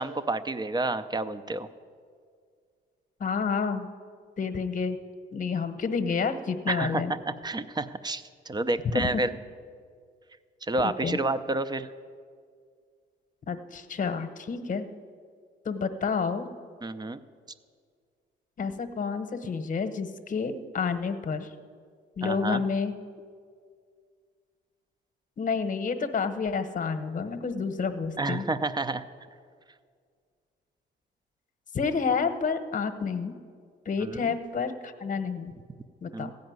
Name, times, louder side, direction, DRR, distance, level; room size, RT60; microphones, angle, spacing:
voice 1, 0.0-1.7 6.7-9.3 10.6-11.9 16.8-17.2 22.2-22.6 28.2-29.0 34.0-34.3 36.1-36.3, right 2 dB, 20° right, 13 dB, 0.6 m, -29 dB
voice 2, 3.2-3.9 4.4-5.0 5.3-7.1 8.9-9.1 10.8-11.2 13.5-14.9 15.6-16.5 18.6-21.5 22.2-22.9 25.4-28.5 31.7-33.3 33.8-35.5 36.0-36.3, left 5 dB, 40° left, 10 dB, 1.0 m, -29 dB
15.0 x 5.3 x 9.4 m, 2.1 s
cardioid pair, 90°, 20 cm